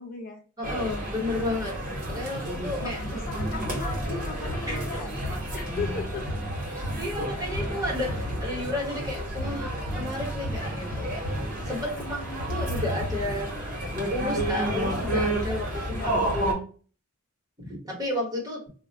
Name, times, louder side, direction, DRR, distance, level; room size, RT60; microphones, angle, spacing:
voice 1, 0.0-0.4 2.8-5.2 5.5-6.3 11.8-12.4 15.9-16.3, left 4 dB, 40° left, 2 dB, 0.4 m, -37 dB
voice 2, 0.6-1.8 2.1-3.0 4.7-4.8 7.0-11.4 11.7-13.5 14.1-16.7 17.6-18.6, left 1 dB, 15° right, -3 dB, 1.1 m, -32 dB
sound 1, 0.6-16.5, right 1 dB, 40° right, 1.1 m, -30 dB
2.4 x 2.1 x 3.9 m, 0.39 s
head